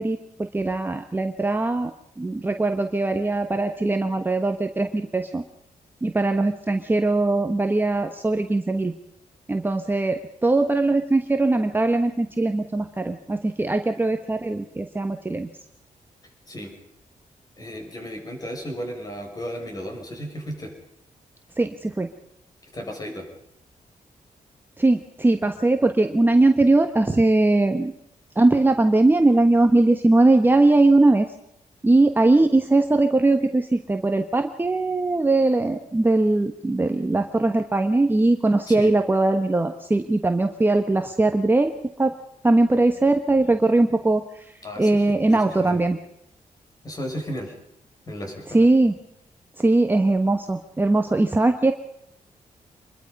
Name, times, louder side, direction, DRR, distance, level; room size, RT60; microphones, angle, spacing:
voice 1, 0.0-1.9 2.2-5.4 6.0-8.9 9.5-15.5 21.6-22.1 24.8-27.9 28.3-31.3 31.8-41.7 42.0-42.1 42.4-46.0 48.5-48.9 49.6-51.7, right 2 dB, 15° right, 6 dB, 1.2 m, -20 dB
voice 2, 17.6-20.7 22.7-23.3 38.7-38.9 44.6-45.8 46.8-47.5 48.1-48.7, equal, 25° left, 3 dB, 6.5 m, -34 dB
26.0 x 22.0 x 5.4 m, 0.75 s
wide cardioid pair, 145°, 14 cm